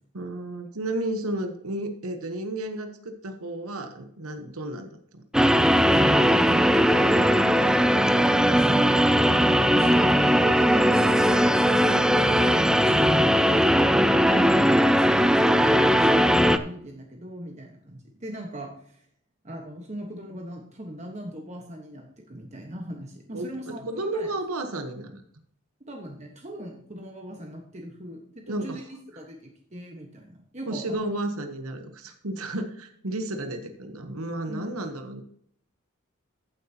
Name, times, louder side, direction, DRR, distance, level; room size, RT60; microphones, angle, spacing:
voice 1, 0.1-5.2 8.7-9.0 11.8-12.6 14.3-14.7 23.3-25.2 28.5-28.8 30.7-35.2, right 1 dB, 80° right, 6 dB, 1.1 m, -33 dB
sound 1, 5.3-16.6, equal, 5° right, 0.4 m, -19 dB
voice 2, 5.9-8.7 9.1-14.1 14.9-19.1 19.4-24.3 25.8-31.0 34.5-34.8, equal, 30° right, 2 dB, 1.3 m, -40 dB
14.5 x 8.0 x 2.9 m, 0.67 s
head